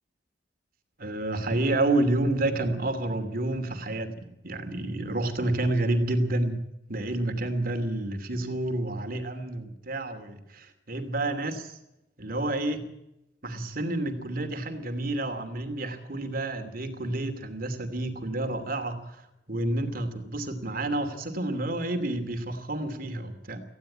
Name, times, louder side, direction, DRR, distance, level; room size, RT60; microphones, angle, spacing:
voice 1, 1.0-6.6 6.9-10.6 10.9-11.8 12.2-12.8 13.4-19.2 19.5-23.6, right 2 dB, 55° right, 8 dB, 2.8 m, -29 dB
19.5 x 15.5 x 8.8 m, 0.86 s
head